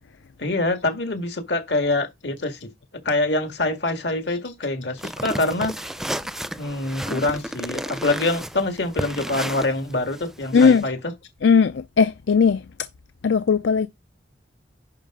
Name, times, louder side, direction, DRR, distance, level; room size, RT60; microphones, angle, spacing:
voice 1, 0.4-2.7 3.0-5.8 6.6-11.1, left 2 dB, 70° left, 1.9 m, -25 dB
sound 1, 5.0-10.9, right 1 dB, ahead, 0.4 m, -32 dB
voice 2, 10.5-10.8 11.4-12.6 13.2-13.9, left 6 dB, 85° left, 0.5 m, -17 dB
10.5 x 5.0 x 3.7 m
head